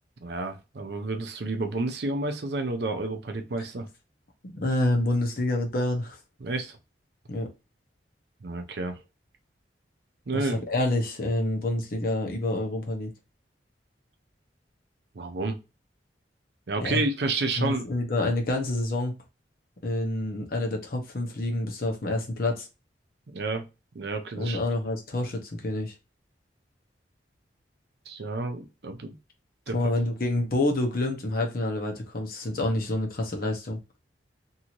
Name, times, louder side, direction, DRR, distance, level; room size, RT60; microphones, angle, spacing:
voice 1, 0.2-3.9 6.4-6.8 8.4-9.0 10.3-10.6 15.2-15.6 16.7-17.9 23.3-23.7 23.9-24.6 28.1-29.1 29.7-29.8, right 2 dB, 65° right, 0.6 m, -30 dB
voice 2, 4.4-6.2 7.3-7.5 10.3-13.1 16.8-17.0 17.6-19.2 19.8-22.7 24.3-25.9 29.7-33.8, left 2 dB, 55° left, 0.8 m, -28 dB
2.7 x 2.6 x 2.9 m
head